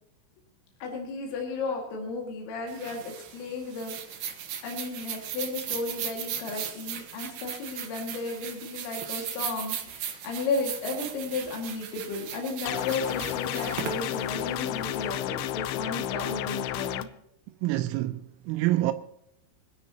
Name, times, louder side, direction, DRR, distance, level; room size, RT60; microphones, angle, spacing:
voice 1, 0.8-4.3 4.6-17.1, left 3 dB, 65° left, 4.2 m, -34 dB
sound 1, 2.7-15.1, right 9 dB, 70° right, 2.2 m, -38 dB
sound 2, 12.7-17.0, left 13 dB, 80° left, 2.9 m, -32 dB
voice 2, 17.6-18.9, right 16 dB, 85° right, 3.4 m, -27 dB
25.0 x 10.5 x 2.9 m
omnidirectional pair, 5.9 m